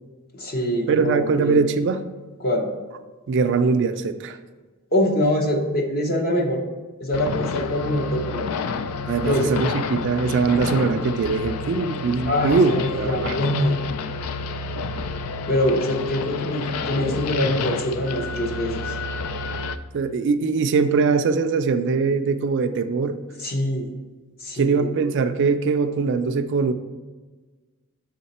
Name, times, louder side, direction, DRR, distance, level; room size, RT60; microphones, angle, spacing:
voice 1, 0.3-1.6 2.4-2.7 4.9-6.6 7.0-8.4 9.3-9.6 12.2-13.8 15.5-18.8 23.4-23.9 24.4-24.9, left 1 dB, 45° left, 2 dB, 0.9 m, -24 dB
voice 2, 0.9-2.0 3.3-4.4 9.1-13.4 19.9-23.2 24.5-26.7, right 4 dB, 55° right, 9 dB, 0.4 m, -22 dB
sound 1, 7.1-19.8, left 4 dB, 85° left, 0.3 m, -29 dB
6.5 x 3.9 x 4.2 m, 1.3 s
head